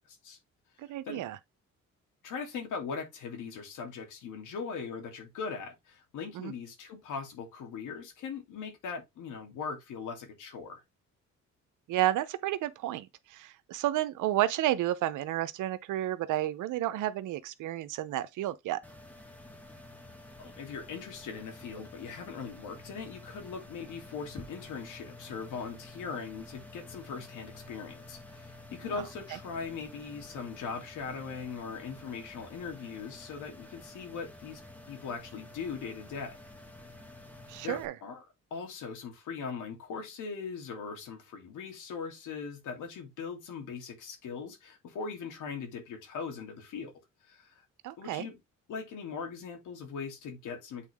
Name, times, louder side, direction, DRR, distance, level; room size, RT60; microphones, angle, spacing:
voice 1, 0.1-0.4 1.1-1.2 2.2-10.8 20.4-34.6 34.9-36.4 37.6-38.2 38.5-46.9 47.3-47.6 48.0-48.4 48.7-50.9, left 5 dB, 85° left, 2.7 m, -40 dB
voice 2, 0.8-1.4 6.3-6.5 11.9-18.8 28.9-29.0 29.3-29.4 37.5-37.9 47.8-48.3, right 14 dB, 85° right, 0.8 m, -31 dB
sound 1, 18.8-37.9, left 2 dB, 5° left, 1.6 m, -50 dB
8.3 x 3.8 x 3.6 m
cardioid pair, 90°, 30 cm